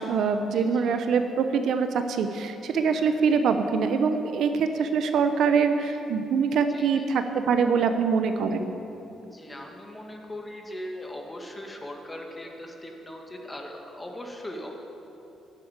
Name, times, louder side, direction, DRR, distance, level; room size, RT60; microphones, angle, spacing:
voice 1, 0.0-8.7, right 5 dB, 70° right, 8 dB, 0.8 m, -24 dB
voice 2, 0.5-0.9 2.9-3.3 6.7-7.0 9.2-14.7, left 1 dB, 15° left, 2 dB, 1.8 m, -40 dB
11.5 x 7.8 x 9.0 m, 3.0 s
cardioid pair, 90°, 0 cm